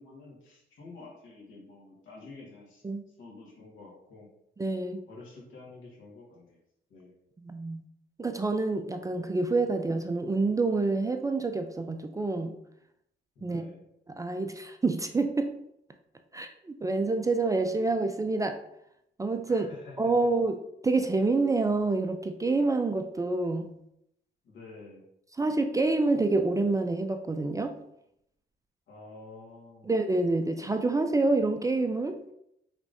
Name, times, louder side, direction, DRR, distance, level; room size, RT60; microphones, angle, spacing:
voice 1, 0.0-2.8 3.2-4.3 5.1-6.6 6.9-7.1 13.3-13.8 19.5-20.3 24.4-25.0 28.9-29.9, left 3 dB, 75° left, -3 dB, 1.7 m, -49 dB
voice 2, 4.6-5.0 7.4-7.8 8.2-12.6 13.4-13.6 14.2-15.5 16.3-18.6 19.2-19.7 20.0-20.5 20.8-23.7 25.4-27.7 29.8-32.2, right 3 dB, 15° right, 6 dB, 0.3 m, -27 dB
4.9 x 3.5 x 2.6 m, 0.79 s
cardioid pair, 90°, 20 cm